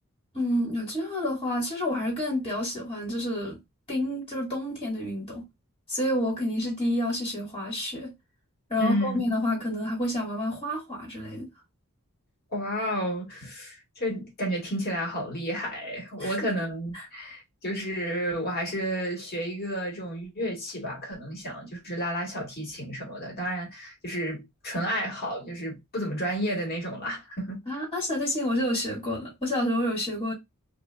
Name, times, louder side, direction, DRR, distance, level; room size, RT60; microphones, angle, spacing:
voice 1, 0.3-3.6 3.9-5.4 5.9-8.1 8.7-11.5 16.2-16.5 16.9-17.0 27.7-30.3, left 1 dB, 25° left, 1.7 m, -29 dB
voice 2, 8.8-9.2 12.5-27.6, equal, 45° left, 1.6 m, -31 dB
3.2 x 2.7 x 2.3 m
head